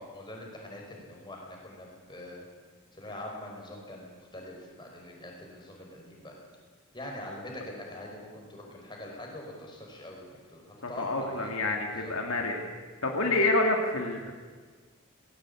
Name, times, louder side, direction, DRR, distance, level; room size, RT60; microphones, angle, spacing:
voice 1, 0.0-2.5 2.9-6.4 6.9-11.5 11.9-12.1, left 1 dB, 20° left, -1 dB, 5.1 m, -43 dB
voice 2, 10.8-12.6 13.0-14.3, left 2 dB, 70° left, 2 dB, 2.5 m, -28 dB
19.5 x 17.0 x 8.6 m, 1.5 s
head